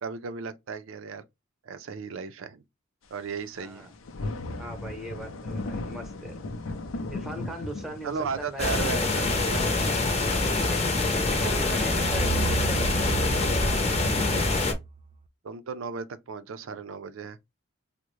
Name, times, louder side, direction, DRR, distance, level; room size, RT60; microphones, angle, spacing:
voice 1, 0.0-1.2 1.6-2.6 3.1-3.9 8.0-9.8 10.7-10.8 11.3-11.5 15.4-17.4, right 5 dB, 85° right, 0.4 m, -35 dB
sound 1, 3.4-3.5 3.7-14.8, left 2 dB, 85° left, 0.5 m, -39 dB
voice 2, 3.6-3.9 4.6-6.4 7.1-8.9 10.4-12.9, right 1 dB, ahead, 0.8 m, -39 dB
sound 2, 8.6-14.7, left 2 dB, 30° left, 0.7 m, -25 dB
sound 3, 12.0-15.1, right 4 dB, 25° right, 0.3 m, -32 dB
3.5 x 2.1 x 3.0 m
head